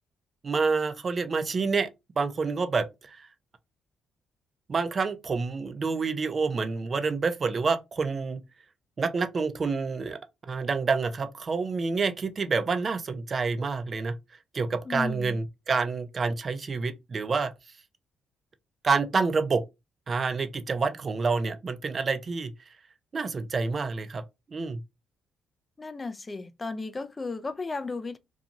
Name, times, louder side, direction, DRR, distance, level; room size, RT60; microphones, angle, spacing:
voice 1, 0.4-1.9 2.2-3.3 4.7-8.4 9.0-10.2 10.5-14.1 14.5-17.5 18.8-19.6 20.1-22.5 23.1-24.2 24.5-24.8, right 4 dB, 40° right, 0.4 m, -28 dB
voice 2, 14.9-15.4 25.8-28.2, left 3 dB, 25° left, 0.3 m, -34 dB
2.5 x 2.3 x 2.8 m
cardioid pair, 90°, 0 cm